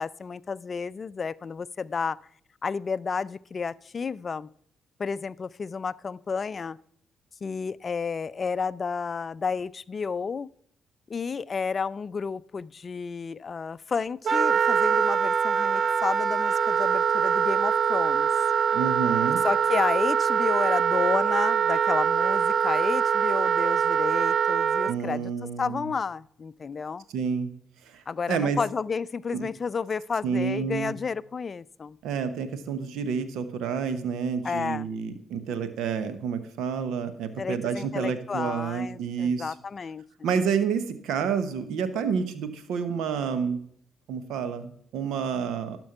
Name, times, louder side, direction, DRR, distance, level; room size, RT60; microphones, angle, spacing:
voice 1, 0.0-2.2 2.6-4.5 5.0-6.8 7.4-10.5 11.1-18.3 19.4-25.3 25.6-27.0 28.1-32.0 34.4-34.9 37.4-40.3, left 5 dB, 45° left, 19 dB, 0.4 m, -31 dB
Wind instrument woodwind instrument, 14.2-24.9, right 7 dB, 55° right, 0.4 m, -23 dB
voice 2, 18.7-19.4 24.9-25.9 27.1-27.5 27.8-28.6 29.3-29.5 30.2-31.0 32.0-39.5 40.2-43.6 44.1-45.8, right 6 dB, 80° right, 11 dB, 1.0 m, -29 dB
12.0 x 4.5 x 5.7 m, 0.65 s
hypercardioid pair, 50°, 0 cm